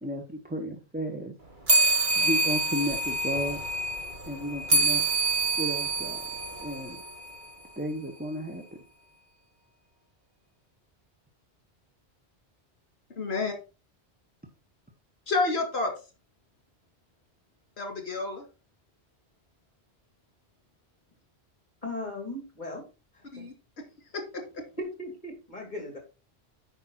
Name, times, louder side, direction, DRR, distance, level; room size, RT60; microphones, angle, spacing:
voice 1, 0.0-1.3 2.2-3.6 4.3-5.0 5.6-6.2 6.6-7.0 7.8-8.6, equal, 10° right, 3 dB, 1.1 m, -33 dB
sound 1, 1.7-7.5, right 2 dB, 50° right, 1.6 m, -26 dB
voice 2, 13.2-13.5 15.3-15.9 17.8-18.4 23.3-23.5 24.1-24.6, left 3 dB, 70° left, 4 dB, 2.5 m, -29 dB
voice 3, 21.8-22.9 23.1-23.5 24.8-26.0, left 1 dB, 45° left, 2 dB, 3.3 m, -37 dB
9.0 x 5.4 x 4.2 m, 0.31 s
omnidirectional pair, 1.1 m